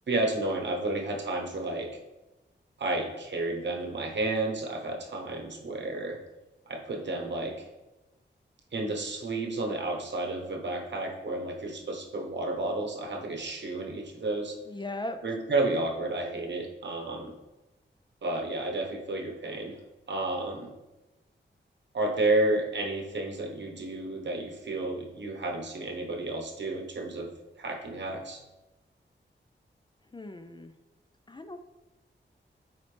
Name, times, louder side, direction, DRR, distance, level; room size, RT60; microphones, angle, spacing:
voice 1, 0.1-1.9 2.8-6.2 6.7-7.6 8.7-14.5 15.2-17.3 18.2-19.8 20.1-20.7 21.9-27.3 27.5-28.4, right 2 dB, 65° right, 2 dB, 1.0 m, -31 dB
voice 2, 14.7-15.2 30.1-30.7 31.3-31.6, left 2 dB, 25° left, 8 dB, 0.4 m, -38 dB
8.2 x 4.3 x 3.3 m, 1.1 s
wide cardioid pair, 110°, 20 cm